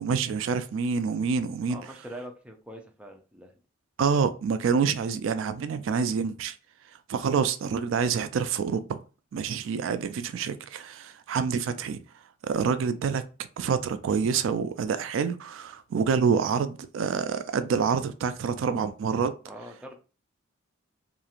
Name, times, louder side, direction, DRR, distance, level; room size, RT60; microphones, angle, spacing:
voice 1, 0.0-1.8 4.0-6.5 7.1-9.0 9.3-12.0 12.4-13.2 13.6-19.3, right 6 dB, 75° right, 0.3 m, -27 dB
voice 2, 1.7-3.6 19.5-20.0, right 1 dB, 5° right, 0.4 m, -43 dB
2.9 x 2.4 x 2.4 m
head